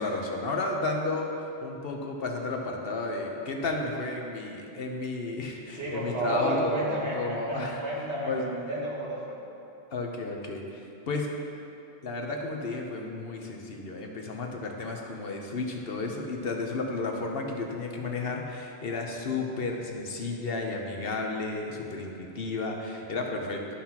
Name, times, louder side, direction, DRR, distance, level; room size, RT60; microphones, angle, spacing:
voice 1, 0.0-1.3 1.6-7.8 8.2-8.5 9.9-11.4 12.0-23.8, left 3 dB, 60° left, 1 dB, 1.0 m, -33 dB
voice 2, 5.7-9.4, right 1 dB, 75° right, -8 dB, 2.3 m, -31 dB
13.0 x 5.7 x 2.9 m, 2.8 s
omnidirectional pair, 1.2 m